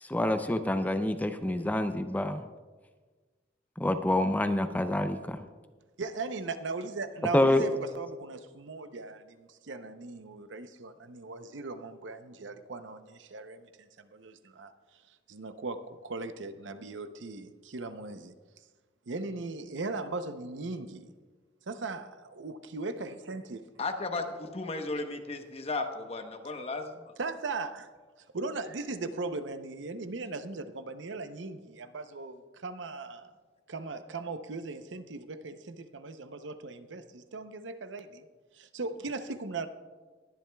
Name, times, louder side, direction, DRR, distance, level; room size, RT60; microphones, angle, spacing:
voice 1, 0.1-2.4 3.8-5.4 7.3-7.7, left 1 dB, 10° left, 9 dB, 0.4 m, -27 dB
voice 2, 6.0-14.7 15.3-18.3 19.1-21.1 21.7-23.6 27.2-27.9 28.3-33.3 33.7-38.3 38.5-39.7, right 3 dB, 85° right, 10 dB, 0.7 m, -38 dB
voice 3, 23.8-27.1, left 3 dB, 35° left, 5 dB, 1.0 m, -35 dB
20.5 x 10.5 x 2.3 m, 1.4 s
head